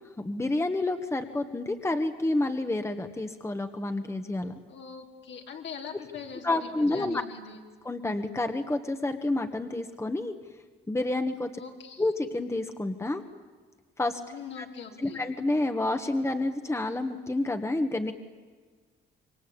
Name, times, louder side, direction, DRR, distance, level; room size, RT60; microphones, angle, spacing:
voice 1, 0.2-4.6 6.4-7.2 7.9-10.3 10.9-11.5 12.0-13.2 14.0-14.2 14.6-14.7 15.0-18.1, left 2 dB, 15° left, 7 dB, 1.7 m, -29 dB
voice 2, 4.7-7.6 11.6-12.0 14.3-15.2, left 6 dB, 65° left, 2 dB, 3.6 m, -42 dB
27.5 x 22.5 x 8.7 m, 1.5 s
cardioid pair, 90°, 20 cm